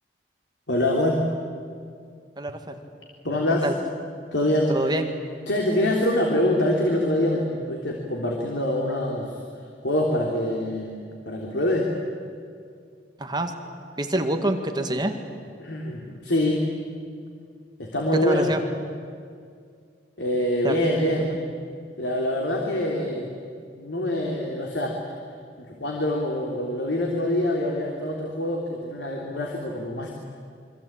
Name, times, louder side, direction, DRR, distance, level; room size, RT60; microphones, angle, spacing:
voice 1, 0.7-1.3 3.2-3.7 4.3-4.9 5.5-9.4 9.8-10.9 11.2-11.9 15.6-16.6 17.8-18.5 20.2-21.3 22.0-23.3 23.7-25.0 25.6-30.1, left 1 dB, 90° left, 0 dB, 3.3 m, -25 dB
voice 2, 2.4-2.8 3.6-3.7 4.7-5.1 13.2-13.5 14.0-15.2 18.1-18.6 20.6-20.8 21.2-21.4, right 1 dB, 25° right, 5 dB, 2.0 m, -26 dB
27.0 x 24.5 x 8.9 m, 2.2 s
head